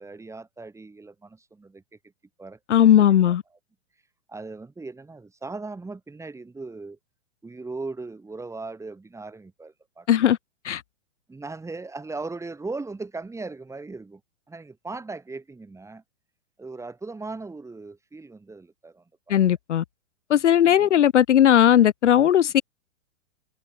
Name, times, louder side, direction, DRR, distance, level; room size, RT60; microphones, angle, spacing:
voice 1, 0.0-1.8 2.4-2.6 3.0-3.3 4.3-7.0 7.4-10.3 11.3-14.2 14.5-16.0 16.6-19.4 20.6-20.9, right 3 dB, 5° right, 6.7 m, -38 dB
voice 2, 2.7-3.4 10.1-10.4 10.7-10.8 19.3-19.8 20.3-22.6, left 10 dB, 65° left, 1.6 m, -17 dB
open air
figure-of-eight pair, 115°, 38 cm